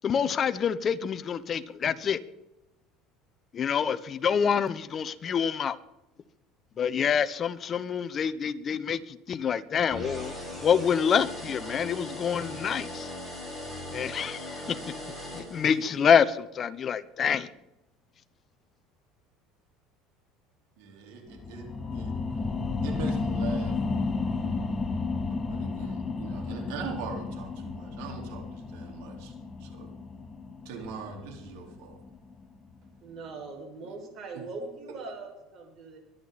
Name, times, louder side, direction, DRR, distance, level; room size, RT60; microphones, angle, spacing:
voice 1, 0.0-2.2 3.5-5.8 6.8-10.3 10.6-13.1 13.9-14.8 15.3-17.5, left 7 dB, 35° left, 14 dB, 0.9 m, -26 dB
sound 1, 9.9-16.1, left 1 dB, 5° right, 7.0 m, -39 dB
voice 2, 20.8-22.1 22.8-23.8 24.3-24.5 25.3-29.3 29.6-29.9 30.6-32.0 33.8-34.0, right 5 dB, 80° right, 2 dB, 4.2 m, -41 dB
sound 2, 21.3-32.4 32.9-33.0, left 3 dB, 20° left, 1.3 m, -33 dB
voice 3, 33.0-36.0, right 3 dB, 45° right, 1 dB, 5.7 m, -41 dB
23.5 x 10.5 x 4.2 m, 0.93 s
supercardioid pair, 120°, 0 cm